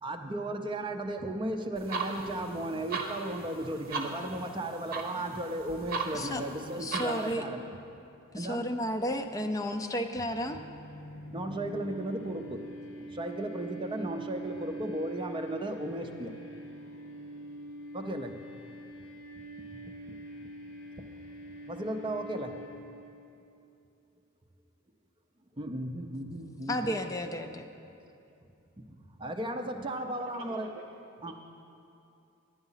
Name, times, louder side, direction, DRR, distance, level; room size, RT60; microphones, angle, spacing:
voice 1, 0.0-7.7 8.3-8.7 11.3-12.6 13.1-16.3 17.9-18.4 21.0-21.1 21.7-22.6 25.6-27.0 28.9-30.7 31.2-31.3, right 1 dB, 25° right, 0.6 m, -35 dB
sound 1, 1.8-7.3, right 4 dB, 45° right, 1.1 m, -38 dB
voice 2, 6.8-7.4 8.3-10.6 26.7-27.7, equal, 15° left, 0.5 m, -32 dB
sound 2, 9.1-23.1, right 1 dB, 75° left, 1.9 m, -44 dB
voice 3, 29.9-30.8 31.3-31.4, right 4 dB, 65° right, 0.7 m, -50 dB
10.5 x 9.3 x 5.6 m
head